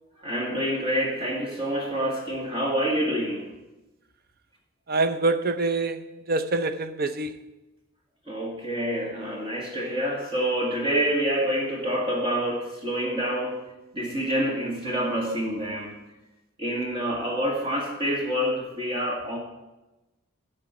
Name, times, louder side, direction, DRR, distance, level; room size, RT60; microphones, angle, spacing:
voice 1, 0.2-3.5 8.3-13.7 13.9-15.9 16.6-19.4, equal, 25° right, 1.8 m, -27 dB
voice 2, 4.9-7.4, right 3 dB, 45° right, 0.6 m, -25 dB
12.5 x 4.4 x 8.2 m
head